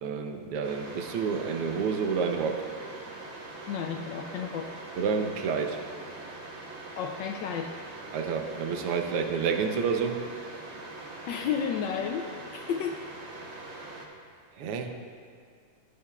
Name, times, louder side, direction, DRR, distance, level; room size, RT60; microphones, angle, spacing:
voice 1, 0.0-2.7 5.0-5.8 8.1-10.3 14.6-15.0, right 6 dB, 85° right, 5 dB, 1.7 m, -29 dB
sound 1, 0.6-14.1, right 2 dB, 45° right, 1.0 m, -43 dB
voice 2, 3.7-4.7 6.9-7.7 11.3-12.3 12.5-13.1, left 7 dB, 75° left, 4 dB, 1.1 m, -32 dB
16.5 x 10.0 x 2.3 m, 2.1 s
omnidirectional pair, 2.4 m